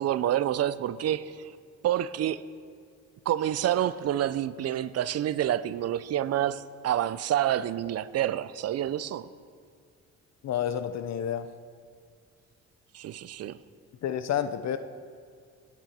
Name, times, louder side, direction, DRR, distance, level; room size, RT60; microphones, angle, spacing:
voice 1, 0.0-1.5 1.8-2.4 3.3-9.3 12.9-13.6, right 11 dB, 55° right, 0.5 m, -28 dB
voice 2, 10.4-11.5 14.0-14.8, left 9 dB, 60° left, 0.6 m, -29 dB
18.0 x 8.6 x 4.3 m
cardioid pair, 90°, 30 cm